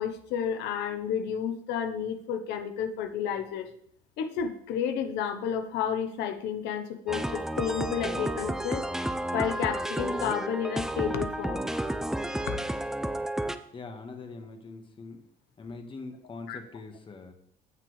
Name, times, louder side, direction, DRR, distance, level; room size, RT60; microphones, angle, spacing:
voice 1, 0.0-3.7 4.2-8.8 9.3-11.7 12.6-12.7 16.5-16.6, left 8 dB, 90° left, 8 dB, 1.0 m, -31 dB
sound 1, 7.1-13.6, right 1 dB, 5° right, 0.5 m, -31 dB
voice 2, 13.7-15.3 15.6-17.3, left 3 dB, 30° left, 5 dB, 1.5 m, -43 dB
16.0 x 6.0 x 3.3 m, 0.68 s
cardioid pair, 110°, 17 cm